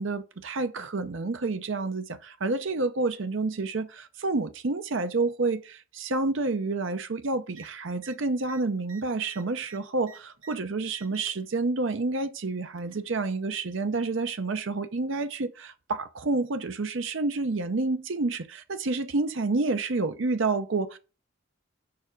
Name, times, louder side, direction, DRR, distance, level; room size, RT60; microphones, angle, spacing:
voice 1, 0.0-21.0, right 3 dB, 60° right, 0.7 m, -29 dB
sound 1, 7.5-7.7 8.0-8.2 8.4-10.6 10.9-11.5 12.4-13.1 14.2-14.3, right 5 dB, 90° right, 1.2 m, -50 dB
6.9 x 5.9 x 5.2 m
head